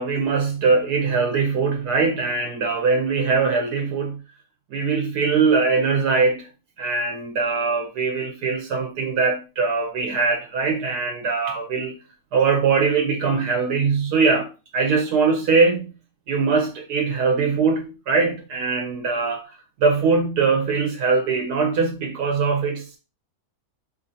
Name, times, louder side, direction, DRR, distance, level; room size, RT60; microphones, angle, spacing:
voice 1, 0.0-4.2 4.7-6.5 6.8-11.9 12.3-15.9 16.3-19.5 19.8-23.0, right 4 dB, 75° right, 1.1 m, -21 dB
4.2 x 2.5 x 2.7 m
omnidirectional pair, 1.8 m